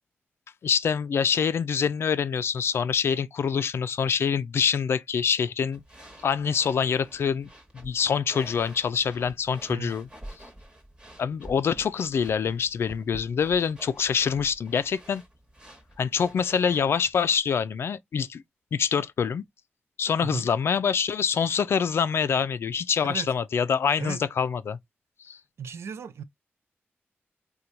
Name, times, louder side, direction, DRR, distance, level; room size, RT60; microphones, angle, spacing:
voice 1, 0.6-5.8 6.2-7.5 7.7-10.1 11.2-15.2 16.0-18.4 18.7-19.4 20.0-24.8 25.2-25.4, left 7 dB, 65° left, 0.3 m, -25 dB
sound 1, 5.7-17.2, right 1 dB, 20° right, 1.2 m, -48 dB
voice 2, 25.6-26.2, right 6 dB, 85° right, 0.5 m, -35 dB
4.3 x 2.3 x 2.6 m
wide cardioid pair, 150°, 4 cm